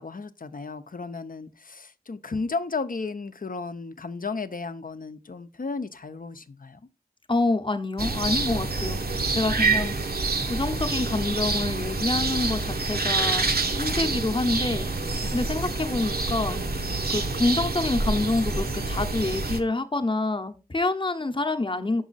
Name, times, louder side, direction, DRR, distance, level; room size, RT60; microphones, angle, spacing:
voice 1, 0.0-6.8 15.2-15.3, left 4 dB, 60° left, 0.6 m, -34 dB
voice 2, 7.3-9.9 10.4-13.5 13.7-14.9 15.3-16.6 17.1-22.0, left 2 dB, 30° left, 0.8 m, -27 dB
sound 1, 8.0-19.6, right 3 dB, 70° right, 0.9 m, -27 dB
6.1 x 5.5 x 4.0 m
wide cardioid pair, 55°, 16 cm